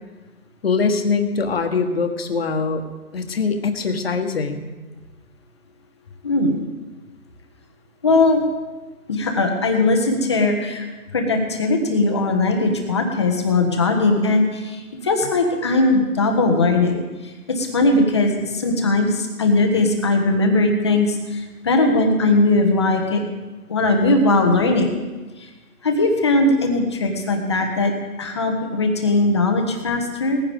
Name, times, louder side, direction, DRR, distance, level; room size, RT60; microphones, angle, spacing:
voice 1, 0.6-2.8 3.1-4.7, left 4 dB, 40° left, 6 dB, 1.4 m, -22 dB
voice 2, 6.2-6.6 8.0-8.4 9.1-10.8 11.1-17.0 17.2-23.2 23.7-24.9 25.4-25.5 25.8-27.9 28.2-30.4, left 2 dB, 20° left, 3 dB, 1.0 m, -19 dB
19.5 x 15.0 x 3.6 m, 1.2 s
figure-of-eight pair, 160°, 47 cm